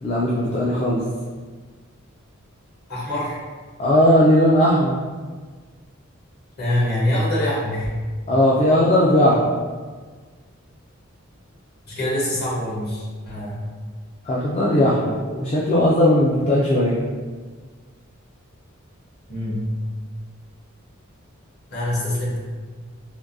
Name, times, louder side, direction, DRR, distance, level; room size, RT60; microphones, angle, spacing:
voice 1, 0.0-1.0 3.8-5.0 8.3-9.6 14.3-17.0, left 1 dB, 30° left, -5 dB, 0.3 m, -18 dB
voice 2, 2.9-3.4 6.6-8.0 11.9-13.7 19.3-19.8 21.7-22.4, left 1 dB, 50° left, -7 dB, 1.2 m, -24 dB
3.6 x 2.6 x 2.6 m, 1.5 s
head